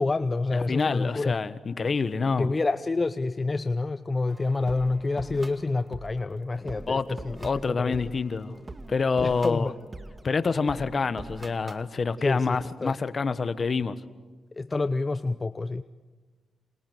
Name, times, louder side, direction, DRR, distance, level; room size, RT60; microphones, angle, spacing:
voice 1, 0.0-1.4 2.4-8.1 9.2-9.7 12.2-13.0 14.5-15.8, left 3 dB, 35° left, 12 dB, 0.8 m, -28 dB
voice 2, 0.7-2.5 6.9-7.1 7.4-8.6 8.9-9.7 10.2-14.0, left 4 dB, 50° left, 13 dB, 1.4 m, -27 dB
sound 1, 4.3-11.9, right 2 dB, 30° right, 2.1 m, -44 dB
28.0 x 26.0 x 8.0 m, 1.4 s
supercardioid pair, 55°, 0 cm